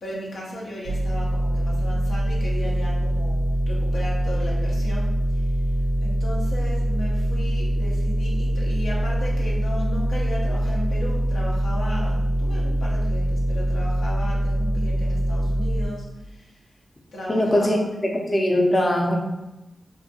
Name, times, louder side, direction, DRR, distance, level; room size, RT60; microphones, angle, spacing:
voice 1, 0.0-3.4 3.7-5.6 6.0-16.6 17.1-17.9, left 1 dB, 90° left, -5 dB, 0.6 m, -35 dB
sound 1, 0.9-15.9, right 1 dB, 80° right, 0.3 m, -23 dB
voice 2, 17.3-17.8 18.1-19.2, left 1 dB, 35° left, -1 dB, 0.5 m, -20 dB
2.6 x 2.2 x 2.7 m, 0.97 s
cardioid pair, 45°, 0 cm